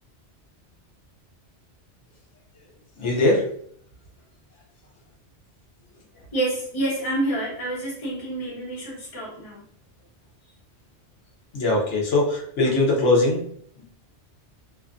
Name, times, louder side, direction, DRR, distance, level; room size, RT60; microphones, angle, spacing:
voice 1, 3.0-3.4 11.5-13.4 13.8-13.9, left 2 dB, 85° left, -3 dB, 1.1 m, -21 dB
voice 2, 6.3-9.6, right 1 dB, 35° left, -5 dB, 1.0 m, -28 dB
2.6 x 2.3 x 2.4 m, 0.64 s
omnidirectional pair, 1.2 m